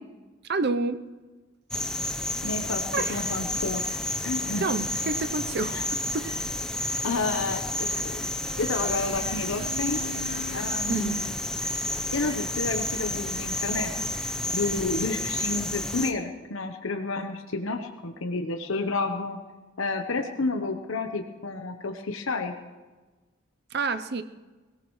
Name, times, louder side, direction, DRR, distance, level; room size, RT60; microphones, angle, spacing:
voice 1, 0.5-1.0 2.9-3.3 4.6-5.8 6.1-6.3 10.9-11.2 23.7-24.2, right 3 dB, 50° right, 10 dB, 0.6 m, -28 dB
sound 1, 1.7-16.1, left 1 dB, 5° left, 0.8 m, -30 dB
voice 2, 2.4-3.8 4.2-4.7 5.7-5.8 7.0-8.3 8.6-10.2 10.5-11.2 12.1-13.9 14.2-19.4 19.8-22.5, left 3 dB, 70° left, 5 dB, 1.0 m, -30 dB
sound 2, 3.1-15.6, right 1 dB, 75° right, 4.6 m, -49 dB
sound 3, 8.4-10.8, equal, 25° right, 1.4 m, -41 dB
22.0 x 17.5 x 3.2 m, 1.2 s
head